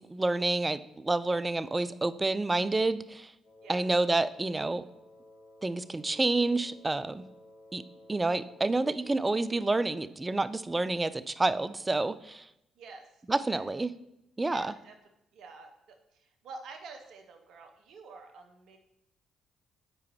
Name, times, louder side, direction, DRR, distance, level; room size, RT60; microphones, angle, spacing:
voice 1, 0.0-3.3 3.7-4.8 5.6-7.2 7.7-7.8 8.1-12.4 13.3-13.9 14.4-14.7, right 2 dB, 20° right, 15 dB, 0.3 m, -29 dB
Wind instrument woodwind instrument, 3.4-10.2, left 1 dB, 45° left, 2.0 m, -55 dB
voice 2, 12.8-13.9 14.4-15.0 15.3-18.8, right 4 dB, 70° right, 4 dB, 0.6 m, -48 dB
7.5 x 4.7 x 3.1 m, 0.84 s
hypercardioid pair, 50°, 0 cm